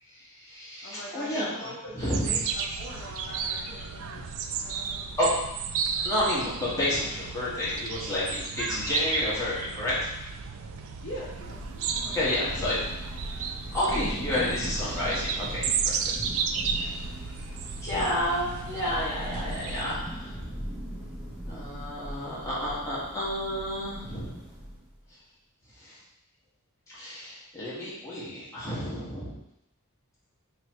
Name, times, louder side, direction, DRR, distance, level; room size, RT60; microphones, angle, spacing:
voice 1, 0.1-1.5 1.9-2.4 4.1-4.2 5.2-5.4 6.0-10.1 12.0-12.8 13.7-16.1 16.5-17.1 17.3-17.4 17.8-20.6 21.5-24.4 25.7-26.0 26.9-29.3, left 1 dB, 15° left, -9 dB, 1.3 m, -30 dB
voice 2, 0.8-4.2 4.6-5.2 11.0-11.9 12.2-13.7, left 1 dB, 55° left, -5 dB, 0.7 m, -43 dB
sound 1, 2.0-20.0, right 6 dB, 65° right, 0.3 m, -34 dB
Thunder / Rain, 10.9-25.0, equal, 5° right, 0.9 m, -39 dB
3.2 x 2.9 x 4.5 m, 0.86 s
head